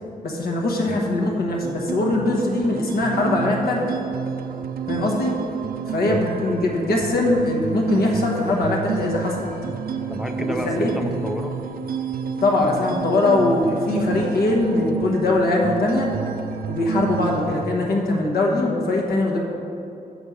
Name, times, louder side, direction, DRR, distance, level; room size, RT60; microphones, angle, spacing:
voice 1, 0.2-4.0 4.9-5.3 5.9-9.5 10.6-10.9 12.4-16.1 16.7-19.4, left 2 dB, 85° left, -1 dB, 1.2 m, -21 dB
sound 1, 1.6-17.6, right 6 dB, 70° right, 0.4 m, -30 dB
voice 2, 10.1-11.5 17.1-17.3, equal, 5° right, 5 dB, 0.4 m, -30 dB
6.7 x 6.2 x 5.0 m, 2.7 s
wide cardioid pair, 125°, 15 cm